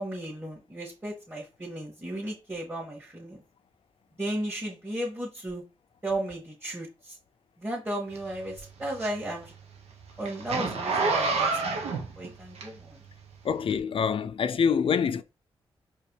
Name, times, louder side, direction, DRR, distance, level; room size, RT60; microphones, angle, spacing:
voice 1, 0.0-3.4 4.2-5.6 6.0-6.9 7.6-9.5 10.2-11.5 11.9-12.7, right 1 dB, 20° right, 2.2 m, -34 dB
Zipper (clothing), 8.1-13.1 13.6-13.8, right 4 dB, 75° right, 1.1 m, -29 dB
voice 2, 13.4-15.2, left 6 dB, 55° left, 0.5 m, -25 dB
4.6 x 3.0 x 3.3 m
supercardioid pair, 45°, 11 cm